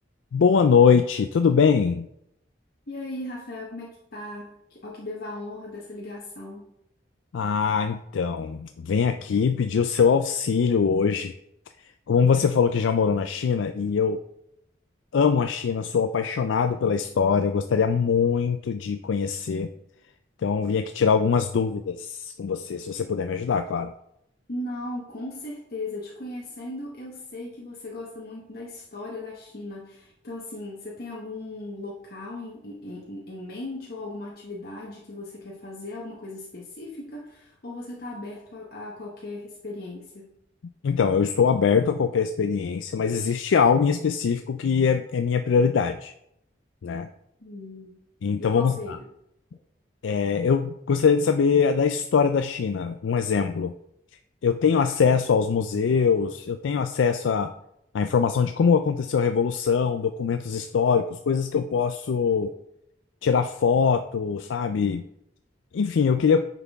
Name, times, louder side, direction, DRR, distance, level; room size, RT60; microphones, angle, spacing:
voice 1, 0.3-2.1 7.3-11.3 12.1-14.2 15.1-19.7 20.4-23.9 40.8-46.1 46.8-47.1 48.2-49.0 50.0-53.7 54.4-57.5 57.9-62.5 63.2-65.0 65.7-66.5, left 6 dB, 90° left, 8 dB, 0.4 m, -22 dB
voice 2, 2.9-6.7 24.5-40.3 47.4-47.9 48.4-49.1, left 2 dB, 55° left, -3 dB, 1.1 m, -37 dB
9.4 x 5.9 x 3.5 m, 0.79 s
head